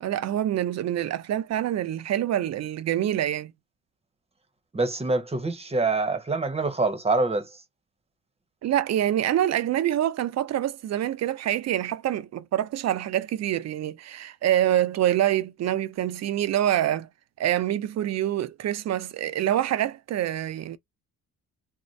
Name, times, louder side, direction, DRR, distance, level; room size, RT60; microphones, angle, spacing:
voice 1, 0.0-3.5 8.6-17.1 17.4-20.8, right 12 dB, 50° right, 0.5 m, -26 dB
voice 2, 4.7-7.5, right 3 dB, 20° right, 0.8 m, -25 dB
2.6 x 2.1 x 3.1 m
cardioid pair, 90°, 34 cm